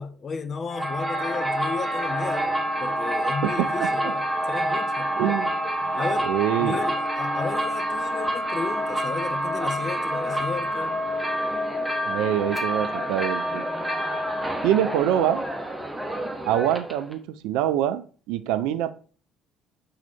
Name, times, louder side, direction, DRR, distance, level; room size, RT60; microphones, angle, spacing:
voice 1, 0.0-5.1 5.9-6.3 6.6-11.0, left 5 dB, 35° left, 0.5 m, -34 dB
sound 1, 0.7-17.1, right 1 dB, 10° right, 1.1 m, -27 dB
voice 2, 3.4-3.9 5.2-5.5 6.2-6.8 12.1-13.6 14.6-15.4 16.5-18.9, right 11 dB, 60° right, 0.4 m, -25 dB
5.6 x 4.1 x 4.3 m
figure-of-eight pair, 50°, 0 cm